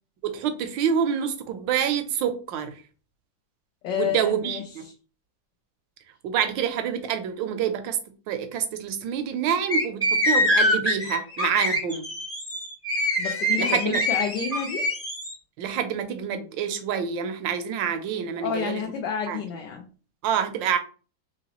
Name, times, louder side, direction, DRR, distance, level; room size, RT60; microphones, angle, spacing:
voice 1, 0.2-2.7 3.9-4.8 6.2-8.0 8.3-12.1 13.6-14.0 15.6-18.8 19.3-19.4 20.2-20.8, right 8 dB, 75° right, 8 dB, 1.3 m, -27 dB
voice 2, 3.8-4.9 13.2-14.8 18.4-19.9, left 7 dB, 70° left, 3 dB, 1.3 m, -30 dB
sound 1, 9.7-15.3, left 1 dB, 15° left, 0.4 m, -24 dB
3.9 x 3.0 x 2.9 m, 0.37 s
omnidirectional pair, 2.1 m